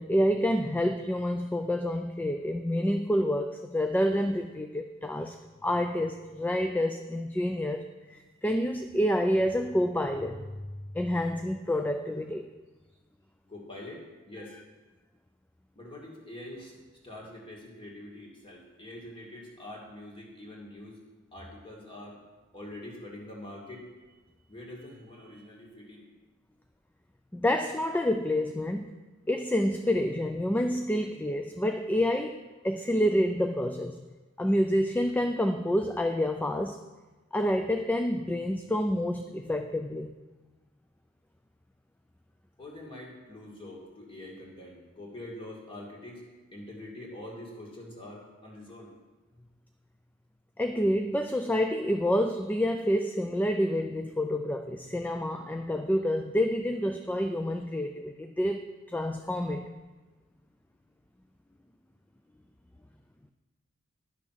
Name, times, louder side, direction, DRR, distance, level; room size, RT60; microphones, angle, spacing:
voice 1, 0.0-5.4 5.6-10.4 10.9-12.5 27.3-29.0 29.3-34.0 34.4-36.8 37.3-40.1 50.6-59.7, equal, 10° left, 6 dB, 0.3 m, -28 dB
voice 2, 13.5-14.6 15.7-21.0 21.3-22.2 22.5-23.9 24.5-26.1 42.6-46.2 46.5-48.9, left 1 dB, 25° left, -3 dB, 2.4 m, -45 dB
11.0 x 6.2 x 5.9 m, 1.2 s
head